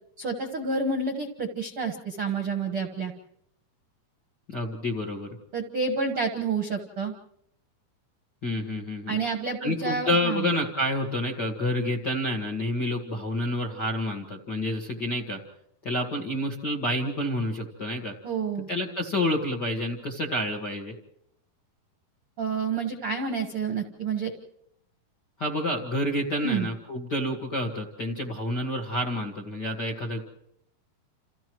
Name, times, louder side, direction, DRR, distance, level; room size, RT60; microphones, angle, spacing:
voice 1, 0.2-3.1 5.5-7.1 9.1-10.5 18.2-18.7 22.4-24.3 26.4-26.7, right 4 dB, 60° right, 2 dB, 1.5 m, -29 dB
voice 2, 4.5-5.3 8.4-9.2 9.6-15.4 15.8-18.1 18.7-20.9 25.4-30.2, left 1 dB, 45° left, 2 dB, 1.4 m, -29 dB
29.0 x 29.0 x 3.1 m, 0.74 s
omnidirectional pair, 4.7 m